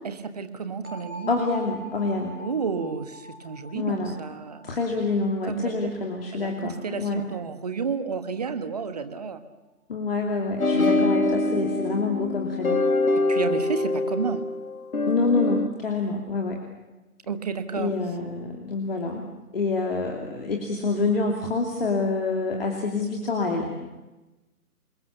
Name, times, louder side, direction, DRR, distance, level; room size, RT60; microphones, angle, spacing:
voice 1, 0.0-1.3 2.4-4.8 5.4-5.9 6.3-9.4 10.7-11.0 13.2-14.5 17.3-18.0, right 5 dB, 25° right, 10 dB, 1.4 m, -31 dB
sound 1, 0.8-6.7, equal, 65° right, 6.4 m, -44 dB
voice 2, 1.3-2.4 3.7-4.1 4.6-7.2 9.9-12.8 15.1-16.6 17.7-19.3 19.5-23.9, left 3 dB, 40° left, 1 dB, 2.8 m, -27 dB
sound 2, 10.6-15.7, left 2 dB, 65° left, 1.9 m, -24 dB
27.5 x 22.0 x 7.2 m, 1.1 s
figure-of-eight pair, 150°, 46 cm